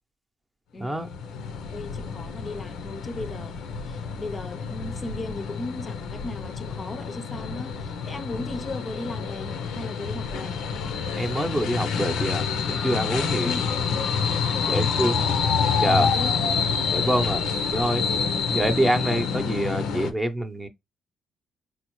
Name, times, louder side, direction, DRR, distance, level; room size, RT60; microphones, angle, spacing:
voice 1, 0.7-1.2 1.7-10.6 13.4-14.3 14.5-16.3, left 2 dB, 30° left, 0.6 m, -37 dB
sound 1, 0.9-20.1, left 6 dB, 90° left, 0.6 m, -27 dB
voice 2, 11.2-13.5 14.7-15.2 15.8-16.1 16.9-17.4 17.7-18.0 18.5-20.7, right 1 dB, 15° right, 0.7 m, -26 dB
4.2 x 2.0 x 3.0 m
cardioid pair, 90°, 0 cm